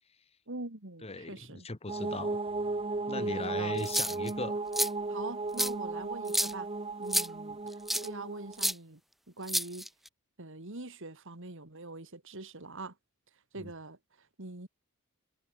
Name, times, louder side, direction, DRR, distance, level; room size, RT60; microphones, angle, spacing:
voice 1, 0.5-1.7 3.1-3.9 5.1-6.7 7.0-7.6 7.9-9.0 9.4-9.9 10.4-12.9 13.5-14.7, right 2 dB, 60° right, 2.5 m, -43 dB
voice 2, 1.0-2.4 3.1-4.6 13.5-13.7, left 2 dB, 25° left, 1.1 m, -38 dB
sound 1, 1.9-8.7, right 3 dB, 25° right, 0.9 m, -35 dB
sound 2, 3.8-4.3 4.7-4.9 5.6-5.7 6.3-6.5 7.1-7.3 7.9-8.1 8.6-8.7 9.5-10.1, equal, ahead, 0.4 m, -29 dB
head